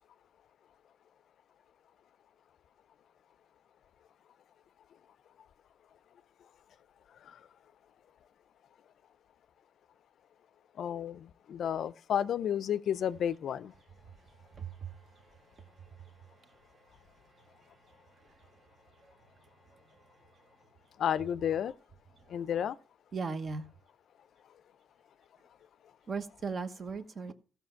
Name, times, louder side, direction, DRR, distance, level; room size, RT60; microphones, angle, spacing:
voice 1, 10.8-13.7 21.0-21.7 22.3-22.8, left 9 dB, 65° left, 0.4 m, -31 dB
voice 2, 14.0-20.6 22.2-22.4 23.1-23.7 26.1-27.3, right 5 dB, 40° right, 1.0 m, -43 dB
15.0 x 5.8 x 5.6 m
cardioid pair, 120°, 0 cm